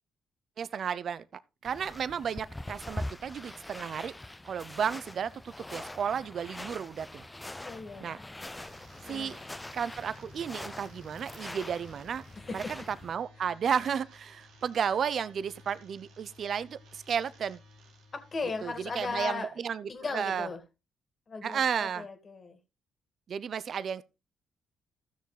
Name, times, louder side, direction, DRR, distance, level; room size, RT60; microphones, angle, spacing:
voice 1, 0.6-1.3 1.6-4.1 4.4-7.2 8.0-8.2 9.1-9.4 9.7-12.2 12.5-17.6 18.6-20.5 21.4-22.1 23.3-24.0, right 7 dB, 60° right, 0.6 m, -33 dB
sound 1, 1.7-13.1, left 1 dB, 15° left, 0.5 m, -43 dB
voice 2, 7.3-8.5 9.0-9.5 12.4-12.7 18.1-19.5 19.9-20.6 21.3-22.6, left 4 dB, 45° left, 2.3 m, -38 dB
sound 2, 8.5-19.2, left 1 dB, 75° right, 2.0 m, -56 dB
14.5 x 6.6 x 3.3 m
hypercardioid pair, 50°, 0 cm